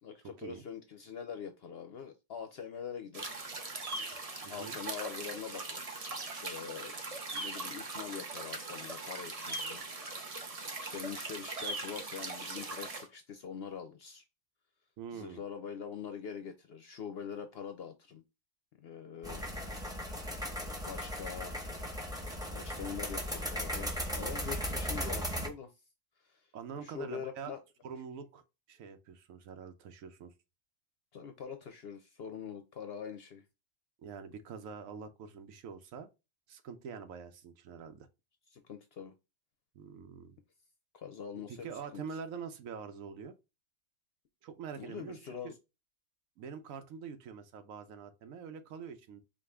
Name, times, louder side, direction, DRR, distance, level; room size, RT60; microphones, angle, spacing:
voice 1, 0.0-3.4 4.4-6.9 7.3-9.8 10.1-14.2 15.1-18.2 18.7-19.9 20.7-25.7 26.2-26.5 26.8-27.6 31.1-33.4 38.5-39.1 40.9-42.0 44.8-45.5, left 7 dB, 60° left, 0.7 m, -44 dB
sound 1, 3.1-13.0, right 3 dB, 35° right, 0.6 m, -40 dB
voice 2, 4.4-4.8 15.0-15.4 26.5-27.5 27.8-28.4 28.7-30.3 34.0-36.1 36.5-38.1 39.7-40.4 41.3-43.3 44.4-45.5 46.4-49.2, right 6 dB, 80° right, 1.1 m, -45 dB
sound 2, 19.2-25.5, equal, 5° right, 0.7 m, -37 dB
5.0 x 2.4 x 3.5 m
omnidirectional pair, 1.4 m